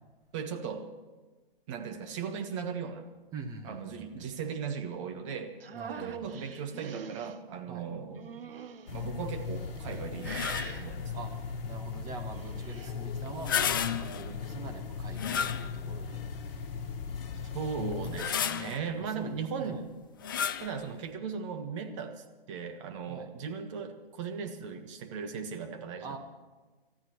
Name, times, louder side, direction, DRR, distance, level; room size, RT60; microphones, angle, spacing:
voice 1, 0.3-0.9 1.7-3.1 3.6-5.6 5.9-8.5 8.9-11.1 17.5-19.8 20.6-26.2, right 6 dB, 30° right, 6 dB, 1.4 m, -37 dB
voice 2, 3.3-4.3 5.7-6.3 7.7-7.9 11.1-11.3 11.6-16.2 18.5-19.8 23.1-23.3 26.0-26.2, right 4 dB, 10° right, 5 dB, 1.1 m, -44 dB
sound 1, 5.6-7.3 8.2-9.0 9.6-10.0 10.2-10.8 12.2-12.9, right 6 dB, 70° right, 1.1 m, -44 dB
sound 2, 8.9-18.2, left 5 dB, 65° left, 1.7 m, -38 dB
sound 3, 10.2-10.9 13.3-14.3 15.1-16.0 16.6-16.7 17.9-18.9 20.2-20.8, left 8 dB, 25° left, 0.4 m, -32 dB
29.0 x 13.5 x 3.1 m, 1.3 s
hypercardioid pair, 150°, 30 cm